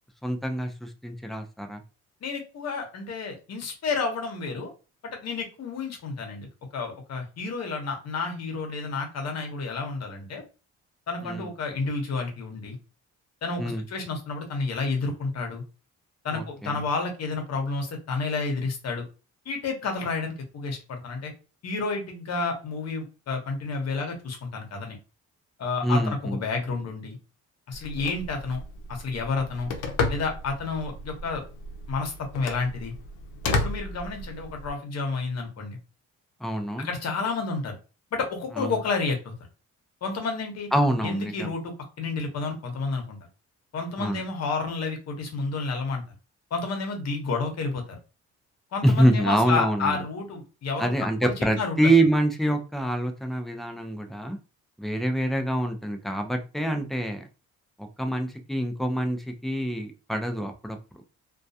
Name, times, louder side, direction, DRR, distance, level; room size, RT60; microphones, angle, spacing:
voice 1, 0.2-1.8 11.2-11.5 13.6-13.8 16.3-16.7 25.8-26.4 36.4-36.9 38.6-38.7 40.7-41.5 44.0-44.2 48.8-50.0 50.8-54.4 54.8-57.2 57.8-60.8, right 1 dB, ahead, 5 dB, 0.5 m, -25 dB
voice 2, 2.2-4.7 5.1-6.5 6.7-10.4 11.1-12.8 13.4-13.6 13.9-15.6 16.2-19.0 19.4-21.3 21.6-25.0 25.6-27.2 27.7-28.6 28.9-29.7 30.1-31.4 31.9-32.9 33.4-35.8 36.8-37.8 38.1-39.3 40.0-40.7 41.0-43.2 43.7-46.0 46.5-48.0 48.7-50.9 51.2-51.8, left 4 dB, 60° left, 3 dB, 0.9 m, -30 dB
Telephone, 27.7-34.7, left 3 dB, 85° left, 0.6 m, -33 dB
2.3 x 2.2 x 2.7 m, 0.33 s
cardioid pair, 90°, 30 cm